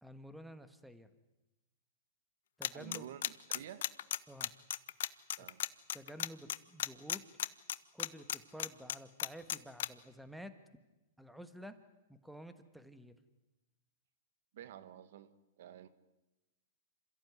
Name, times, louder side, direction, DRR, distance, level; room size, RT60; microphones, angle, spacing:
voice 1, 0.0-1.1 2.6-3.1 4.3-4.5 5.4-5.5 5.9-7.2 7.9-10.6 11.2-11.8 12.1-13.1, equal, ahead, 10 dB, 1.5 m, -51 dB
sound 1, 2.6-9.9, left 11 dB, 70° left, 0.9 m, -34 dB
voice 2, 2.7-3.2 3.5-3.9 5.4-5.6 14.5-15.9, right 10 dB, 65° right, 14 dB, 1.4 m, -50 dB
27.5 x 14.5 x 9.4 m, 1.0 s
hypercardioid pair, 135°, 0 cm